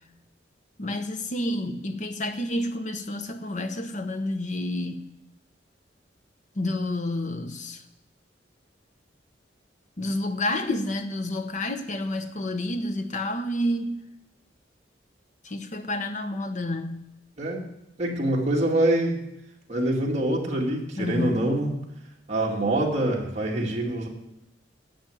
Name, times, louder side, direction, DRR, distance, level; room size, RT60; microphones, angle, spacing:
voice 1, 0.8-5.0 6.5-7.8 10.0-14.0 15.4-17.1 21.0-21.5, left 1 dB, 45° left, 1.0 m, -29 dB
voice 2, 17.4-17.7 18.0-19.2 19.7-21.8 22.3-24.1, right 1 dB, 40° right, 2.3 m, -25 dB
10.5 x 7.6 x 9.2 m
head